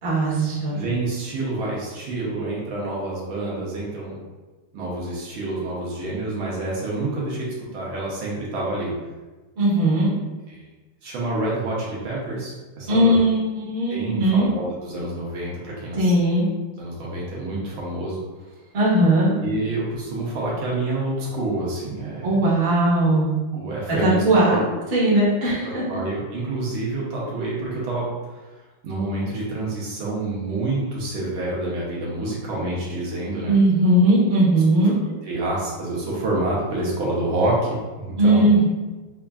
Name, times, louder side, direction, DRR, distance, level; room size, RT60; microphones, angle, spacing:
voice 1, 0.0-0.8 9.6-10.1 12.9-14.5 16.0-16.4 18.7-19.3 22.2-23.3 24.0-24.6 24.9-25.8 33.5-34.9 38.2-38.6, right 1 dB, 40° right, -7 dB, 1.0 m, -18 dB
voice 2, 0.7-4.2 4.7-8.9 10.5-10.6 11.0-13.2 13.9-16.1 16.8-18.2 19.3-22.4 23.5-24.6 25.9-28.4 28.8-33.5 35.3-38.5, right 2 dB, 70° right, -5 dB, 1.6 m, -28 dB
5.4 x 2.4 x 2.3 m, 1.2 s
omnidirectional pair, 2.4 m